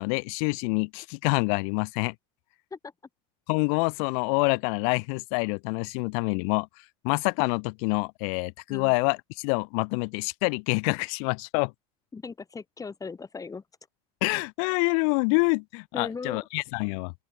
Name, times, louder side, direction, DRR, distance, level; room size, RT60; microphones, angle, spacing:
voice 1, 0.0-2.1 3.5-6.7 7.0-11.7 14.2-17.1, left 36 dB, 70° left, 0.5 m, -26 dB
voice 2, 12.1-13.6 15.9-16.5, left 4 dB, 20° left, 2.1 m, -38 dB
open air
supercardioid pair, 110°, 18 cm